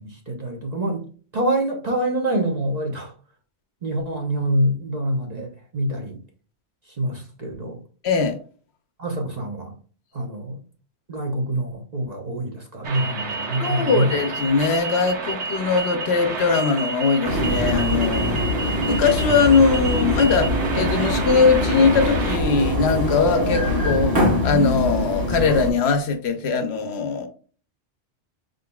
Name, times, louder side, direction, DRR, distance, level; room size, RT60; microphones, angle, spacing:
voice 1, 0.3-1.0 1.3-3.1 3.8-6.2 7.0-7.8 9.0-9.7 10.1-10.6 11.1-14.1, right 1 dB, 40° right, 0.8 m, -25 dB
voice 2, 8.0-8.4 13.6-27.3, left 5 dB, 70° left, 0.9 m, -21 dB
sound 1, 12.8-22.4, right 3 dB, 75° right, 1.2 m, -30 dB
sound 2, 17.2-25.7, left 1 dB, 20° right, 1.1 m, -23 dB
5.2 x 3.8 x 2.2 m
omnidirectional pair, 1.2 m